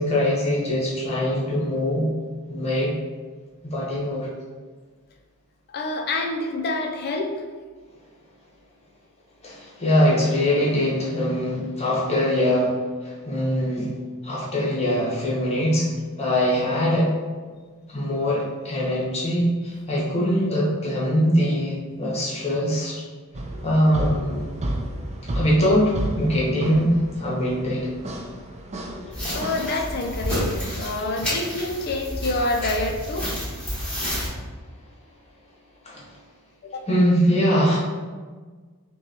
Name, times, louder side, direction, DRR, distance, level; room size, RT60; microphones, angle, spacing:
voice 1, 0.0-2.1 2.5-2.9 3.6-4.3 9.4-13.9 14.2-15.9 16.2-17.1 17.9-23.0 23.6-24.5 25.2-27.9 33.8-34.1 35.8-36.0 36.9-37.8, equal, 30° left, -5 dB, 1.0 m, -22 dB
voice 2, 5.7-7.4 29.3-33.3 36.6-36.9, left 2 dB, 45° left, 3 dB, 0.5 m, -27 dB
sound 1, 23.3-29.7, right 1 dB, 30° right, 0.4 m, -32 dB
sound 2, 29.1-34.3, equal, 5° left, 1.4 m, -30 dB
5.7 x 2.3 x 2.8 m, 1.5 s
head